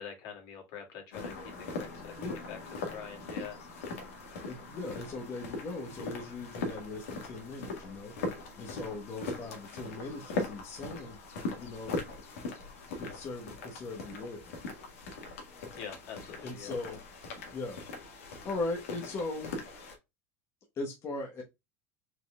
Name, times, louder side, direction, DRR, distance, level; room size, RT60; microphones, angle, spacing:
voice 1, 0.0-1.3 1.8-2.1 2.5-3.6 15.8-16.7, left 7 dB, 65° left, 2.3 m, -44 dB
sound 1, 1.1-20.0, left 3 dB, 90° left, 1.6 m, -40 dB
voice 2, 2.2-2.5 4.4-12.0 13.0-14.5 16.4-17.0 17.5-17.8 18.2-19.6 20.8-21.4, left 2 dB, 35° left, 1.1 m, -39 dB
4.6 x 4.0 x 2.3 m
supercardioid pair, 110°, 8 cm